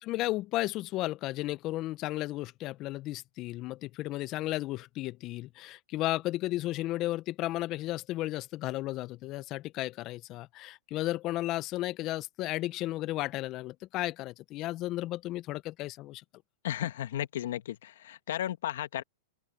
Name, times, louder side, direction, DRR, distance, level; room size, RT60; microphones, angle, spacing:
voice 1, 0.0-16.2, left 16 dB, 40° left, 1.0 m, -34 dB
voice 2, 16.6-19.0, left 12 dB, 70° left, 1.5 m, -34 dB
open air
hypercardioid pair, 110°, 0 cm